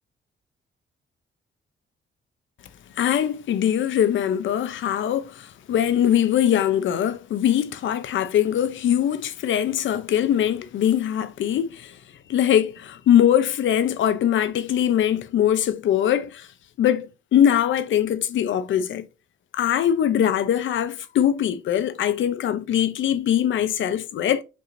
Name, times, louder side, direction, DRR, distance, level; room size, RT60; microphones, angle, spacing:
voice 1, 3.0-12.0 12.3-16.5 16.8-19.1 19.5-24.4, left 10 dB, 70° left, 0.6 m, -22 dB
5.3 x 2.6 x 3.0 m
wide cardioid pair, 165°, 20 cm